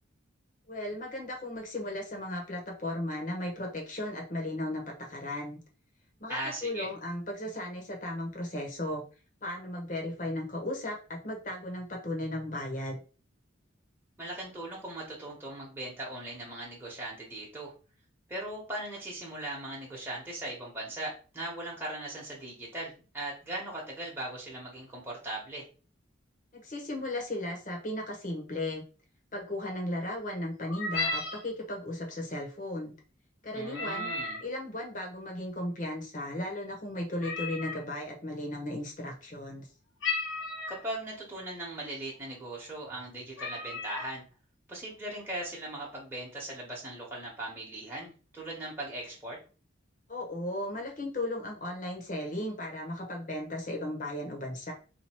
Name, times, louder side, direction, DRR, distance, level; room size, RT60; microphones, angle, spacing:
voice 1, 0.7-4.8 5.1-5.6 6.2-9.0 9.4-13.0 26.5-28.8 29.3-32.9 33.4-34.1 34.4-39.7 50.1-54.7, left 1 dB, 40° left, 1 dB, 0.9 m, -36 dB
voice 2, 6.3-6.9 14.2-17.7 18.3-25.6 33.5-34.4 40.7-44.2 44.7-49.4, right 1 dB, 10° right, -5 dB, 1.1 m, -39 dB
sound 1, 30.6-31.4 33.6-34.5 37.2-37.8 40.0-40.8 41.6-41.7 42.1-42.4 42.9-43.0 43.4-44.1, left 3 dB, 80° left, 1.2 m, -34 dB
2.9 x 2.6 x 4.3 m, 0.36 s
head